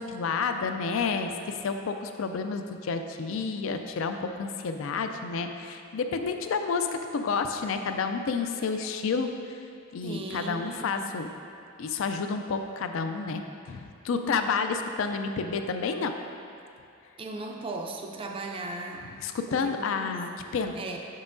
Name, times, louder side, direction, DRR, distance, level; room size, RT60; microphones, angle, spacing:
voice 1, 0.0-9.6 9.9-11.3 11.8-16.2 19.2-20.8, left 5 dB, 70° left, 7 dB, 0.4 m, -30 dB
voice 2, 10.0-11.2 17.2-19.1 19.5-21.0, right 2 dB, 25° right, 2 dB, 0.4 m, -38 dB
6.9 x 5.5 x 2.6 m, 2.5 s
head